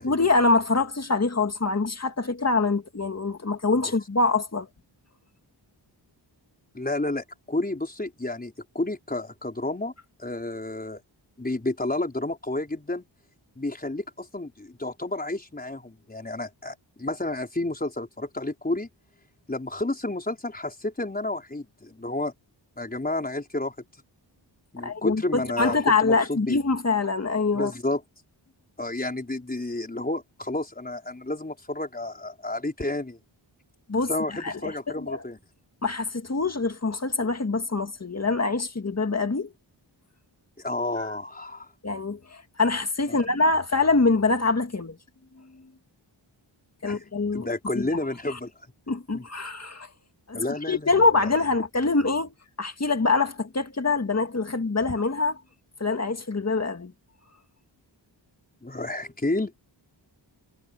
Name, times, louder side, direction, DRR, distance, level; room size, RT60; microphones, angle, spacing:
voice 1, 0.0-4.7 24.8-27.7 33.9-34.1 34.4-35.2 35.8-39.5 41.8-45.0 45.4-45.5 46.8-47.5 47.8-47.9 48.3-48.4 48.9-49.9 50.3-55.4 55.8-56.9, left 3 dB, 35° left, 2.1 m, -24 dB
voice 2, 6.7-9.9 10.2-11.0 11.4-13.0 13.5-18.9 19.5-22.3 22.8-23.7 24.7-26.6 27.5-28.0 28.8-33.2 34.1-35.4 40.6-41.7 43.1-43.2 46.8-47.0 47.3-48.5 49.1-49.3 50.3-51.3 58.6-59.5, left 2 dB, 20° left, 4.8 m, -31 dB
wide cardioid pair, 120°, 45 cm